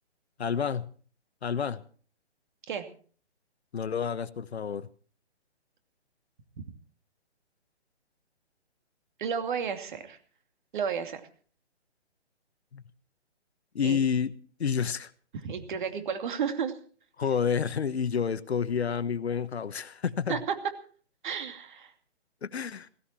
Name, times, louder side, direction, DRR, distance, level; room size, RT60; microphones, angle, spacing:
voice 1, 0.4-0.9 1.4-1.8 3.7-4.9 12.7-12.8 13.7-14.3 14.6-15.1 17.2-20.4 22.4-22.9, left 7 dB, 65° left, 15 dB, 1.2 m, -29 dB
voice 2, 9.2-10.2 10.7-11.2 13.8-14.0 15.4-16.7 20.3-20.5 21.2-21.9, right 7 dB, 45° right, 7 dB, 2.6 m, -32 dB
17.0 x 16.5 x 4.4 m, 0.44 s
figure-of-eight pair, 145°, 34 cm